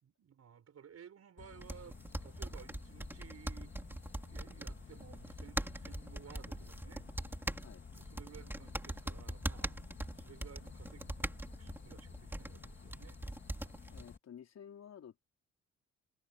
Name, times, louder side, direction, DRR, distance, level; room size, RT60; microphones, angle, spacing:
voice 1, 0.0-3.9 4.3-7.1 7.9-9.8 10.1-11.3 11.6-13.2, right 8 dB, 55° right, 5.7 m, -56 dB
sound 1, 1.4-14.2, left 6 dB, 40° left, 2.5 m, -53 dB
sound 2, 1.6-14.1, right 1 dB, 5° right, 2.6 m, -42 dB
voice 2, 13.9-15.3, left 8 dB, 60° left, 4.1 m, -53 dB
cardioid pair, 90°, 30 cm